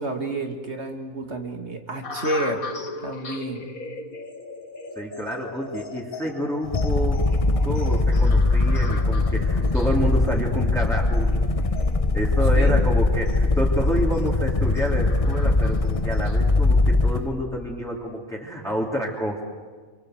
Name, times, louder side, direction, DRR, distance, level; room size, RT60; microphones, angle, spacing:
voice 1, 0.0-2.7 3.0-3.7 12.5-12.9, right 2 dB, 50° right, 4 dB, 2.6 m, -30 dB
sound 1, 2.0-16.4, left 3 dB, 85° left, 2.4 m, -39 dB
voice 2, 4.9-7.3 7.6-11.4 12.1-19.4, equal, ahead, -3 dB, 3.1 m, -28 dB
sound 2, 6.6-17.3, left 2 dB, 25° left, 1.1 m, -21 dB
28.0 x 25.5 x 8.0 m, 1.5 s
omnidirectional pair, 1.4 m